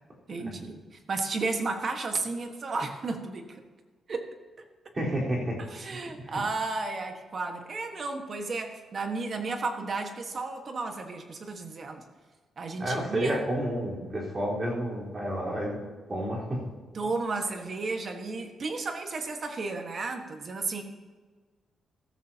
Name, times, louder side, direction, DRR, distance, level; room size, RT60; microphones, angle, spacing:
voice 1, 0.3-3.6 4.1-4.3 5.6-12.0 12.6-13.5 16.9-20.8, right 3 dB, 40° right, 5 dB, 1.5 m, -33 dB
voice 2, 4.9-5.6 6.3-6.4 12.8-15.8 16.1-16.6, right 1 dB, 25° right, -5 dB, 4.3 m, -30 dB
15.0 x 14.0 x 2.9 m, 1.4 s
wide cardioid pair, 155°, 0 cm